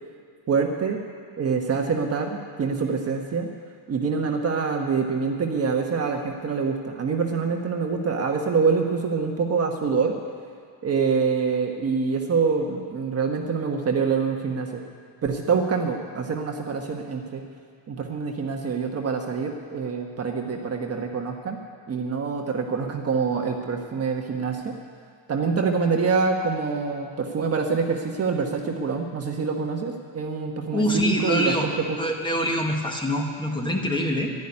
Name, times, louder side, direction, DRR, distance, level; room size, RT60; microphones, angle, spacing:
voice 1, 0.5-1.0 1.4-3.5 3.9-10.1 10.8-14.8 15.2-17.4 17.9-21.6 21.9-24.8 25.3-32.0, right 5 dB, 30° right, 2 dB, 1.3 m, -25 dB
voice 2, 30.7-31.7 32.0-34.3, equal, 10° left, 1 dB, 1.6 m, -24 dB
11.5 x 11.5 x 9.9 m, 2.2 s
cardioid pair, 140°, 48 cm